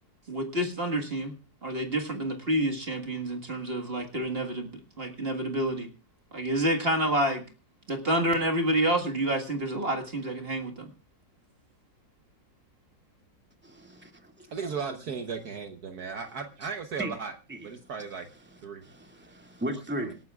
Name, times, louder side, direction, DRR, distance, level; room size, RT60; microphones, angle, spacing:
voice 1, 0.3-1.3 1.6-4.7 5.0-5.9 6.3-7.4 7.9-10.9, right 1 dB, 35° right, 2 dB, 1.9 m, -28 dB
voice 2, 13.6-14.3 14.6-14.7 17.0-17.1 17.5-17.7 18.8-20.2, right 1 dB, 5° right, 4 dB, 2.2 m, -36 dB
voice 3, 14.5-17.3 17.6-18.3 18.6-18.8, right 5 dB, 60° right, 7 dB, 1.5 m, -36 dB
26.5 x 12.0 x 2.4 m, 0.32 s
omnidirectional pair, 1.9 m